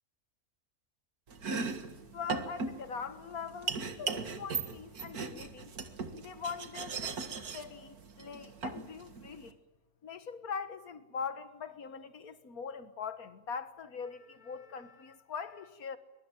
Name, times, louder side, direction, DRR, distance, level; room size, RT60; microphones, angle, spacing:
Domestic sounds home sounds, 1.3-9.5, right 4 dB, 85° right, 2.4 m, -38 dB
voice 1, 2.1-5.7 6.1-9.6 10.0-16.0, left 6 dB, 75° left, 2.0 m, -42 dB
23.0 x 23.0 x 9.1 m
omnidirectional pair, 1.6 m